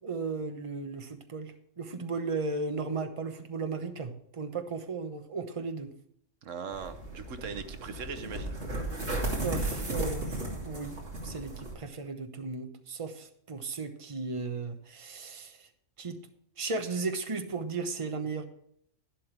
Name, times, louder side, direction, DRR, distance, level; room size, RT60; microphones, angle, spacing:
voice 1, 0.0-5.9 9.4-15.7 16.0-16.2 16.6-18.4, right 4 dB, 30° right, 7 dB, 1.0 m, -35 dB
voice 2, 6.4-8.6, right 5 dB, 85° right, 10 dB, 1.2 m, -40 dB
sound 1, 6.7-11.7, right 2 dB, 60° right, 3.0 m, -35 dB
11.5 x 10.5 x 3.3 m, 0.68 s
omnidirectional pair, 1.3 m